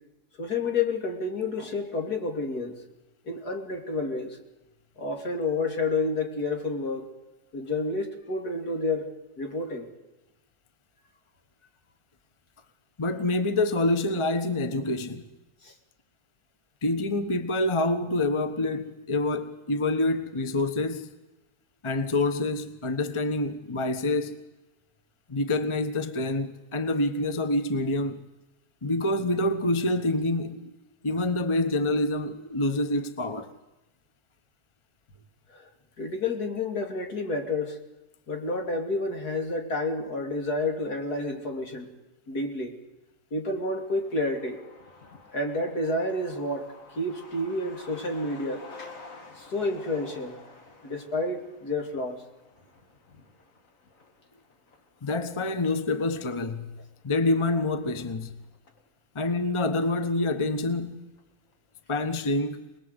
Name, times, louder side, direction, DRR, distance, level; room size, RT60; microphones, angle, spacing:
voice 1, 0.4-2.8 3.2-4.4 5.0-7.1 7.5-9.1 9.4-9.9 15.6-15.7 35.5-35.7 36.0-37.8 38.3-41.9 42.3-42.8 43.3-44.6 45.3-48.9 49.3-50.4 50.8-52.2, left 2 dB, 70° left, 3.4 m, -30 dB
voice 2, 13.0-15.2 16.8-21.1 21.8-24.4 25.3-28.2 28.8-30.7 31.0-33.5 55.0-56.8 57.0-58.4 59.1-61.0 61.9-62.6, left 2 dB, 20° left, 1.2 m, -27 dB
Truck, 43.7-58.9 59.2-59.3 59.5-60.4 60.7-60.8 61.2-61.5, left 3 dB, 55° left, 2.7 m, -51 dB
25.0 x 20.5 x 8.1 m
omnidirectional pair, 1.7 m